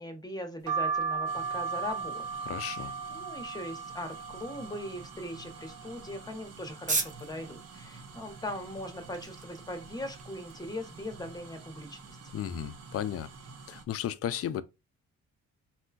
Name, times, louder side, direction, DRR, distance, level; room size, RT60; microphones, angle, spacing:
voice 1, 0.0-2.3 2.7-12.2, left 1 dB, 15° left, 0.9 m, -40 dB
sound 1, 0.7-6.3 6.8-7.6 8.0-8.1 8.2-9.4 9.8-10.2 11.0-11.3 12.1-12.3 12.6-12.8, right 5 dB, 80° right, 0.7 m, -37 dB
sound 2, 1.3-13.8, right 4 dB, 55° right, 0.9 m, -50 dB
voice 2, 2.4-2.9 12.3-13.3 13.7-14.6, left 10 dB, 50° left, 0.4 m, -34 dB
sound 3, 4.1-11.1, right 4 dB, 25° right, 0.6 m, -40 dB
4.2 x 2.3 x 2.3 m
cardioid pair, 90°, 30 cm